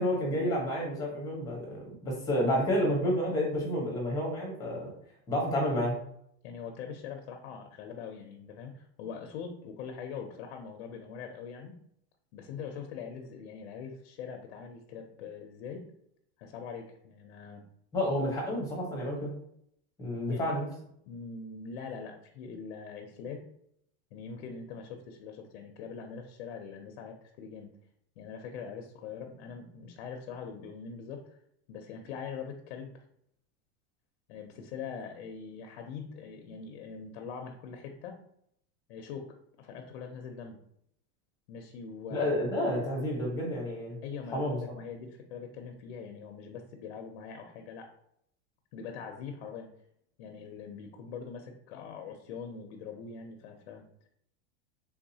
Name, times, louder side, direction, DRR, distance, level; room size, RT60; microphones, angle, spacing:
voice 1, 0.0-4.9 5.3-6.0 17.9-19.3 20.0-20.7 42.1-44.0 44.3-44.6, equal, 10° left, -2 dB, 0.9 m, -30 dB
voice 2, 6.4-11.7 12.3-15.8 16.4-17.6 20.3-20.5 21.1-23.4 24.1-27.7 28.2-31.4 31.7-33.0 34.3-38.2 38.9-40.6 41.5-42.4 44.0-47.9 48.7-49.7 50.2-54.1, left 6 dB, 60° left, 3 dB, 0.6 m, -43 dB
3.6 x 2.7 x 2.7 m, 0.71 s
supercardioid pair, 160°, 34 cm